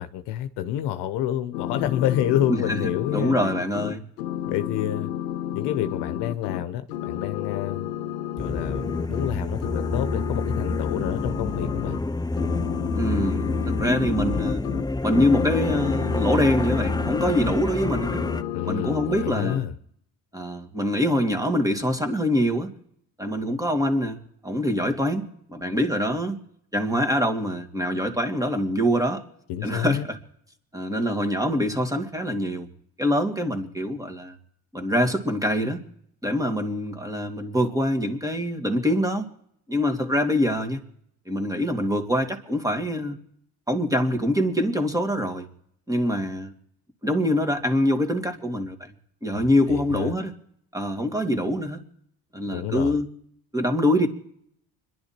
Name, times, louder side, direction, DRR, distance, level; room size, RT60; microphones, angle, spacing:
voice 1, 0.0-3.4 4.4-5.1 5.5-7.9 8.4-12.0 18.5-19.7 29.5-30.1 49.3-50.1 52.5-53.0, left 11 dB, 65° left, 1.0 m, -28 dB
sound 1, 1.5-6.6 6.9-9.3 9.6-12.0 12.4-17.5 17.8-19.6, left 11 dB, 85° left, 0.9 m, -31 dB
voice 2, 2.5-2.8 3.1-4.0 12.9-14.6 15.0-18.3 18.7-19.6 20.3-22.7 23.2-26.4 26.7-29.2 29.6-30.2 30.7-32.7 33.0-34.4 34.7-35.8 36.2-39.3 39.7-40.8 41.3-43.2 43.7-45.5 45.9-46.5 47.0-48.9 49.2-50.3 50.7-51.8 52.3-53.1 53.5-54.1, equal, 10° right, 2.5 m, -24 dB
sound 2, 8.4-18.4, left 2 dB, 10° left, 0.7 m, -28 dB
25.5 x 11.5 x 4.4 m
hypercardioid pair, 65°, 44 cm